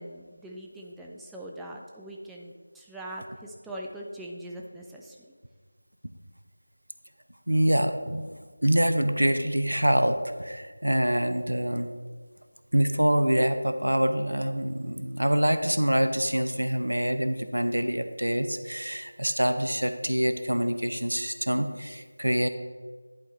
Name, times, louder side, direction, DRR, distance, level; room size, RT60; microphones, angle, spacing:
voice 1, 0.0-5.2, right 1 dB, 5° right, -3 dB, 0.3 m, -41 dB
voice 2, 7.5-8.3 8.6-11.9 12.7-22.5, equal, 80° right, 9 dB, 0.6 m, -25 dB
11.0 x 3.6 x 4.2 m, 1.5 s
figure-of-eight pair, 165°, 0 cm